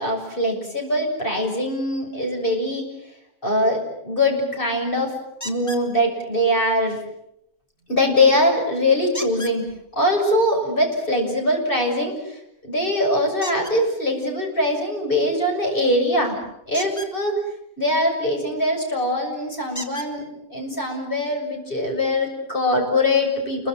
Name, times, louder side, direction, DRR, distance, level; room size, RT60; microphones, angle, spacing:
voice 1, 0.0-2.9 3.4-5.1 5.4-7.0 7.9-9.6 9.9-12.4 12.6-16.4 16.7-17.4 17.8-20.2 20.5-23.7, left 1 dB, 35° left, 2 dB, 7.1 m, -22 dB
sound 1, 5.4-5.9 9.1-9.6 13.4-13.8 16.7-17.1 18.8-18.9 19.7-20.1 21.1-21.2 21.7-21.8, left 1 dB, 10° left, 3.4 m, -34 dB
28.5 x 23.5 x 7.8 m, 0.79 s
omnidirectional pair, 1.5 m